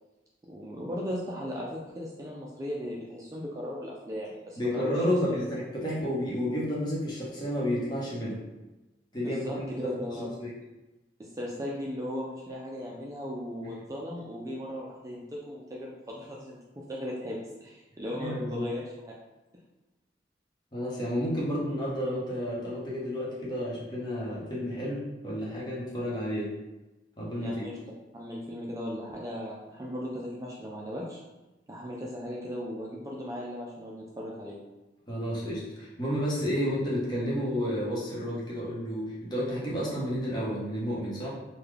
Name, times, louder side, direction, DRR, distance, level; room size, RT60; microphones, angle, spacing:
voice 1, 0.5-5.0 5.3-5.4 9.2-10.3 11.2-18.9 27.4-27.8 28.1-31.2 31.7-34.6, equal, 20° right, -4 dB, 0.4 m, -37 dB
voice 2, 4.6-8.4 9.1-10.5 18.2-18.7 20.7-26.5 27.2-27.7 35.1-41.3, equal, 25° left, -6 dB, 1.0 m, -31 dB
3.7 x 2.2 x 3.3 m, 1.1 s
head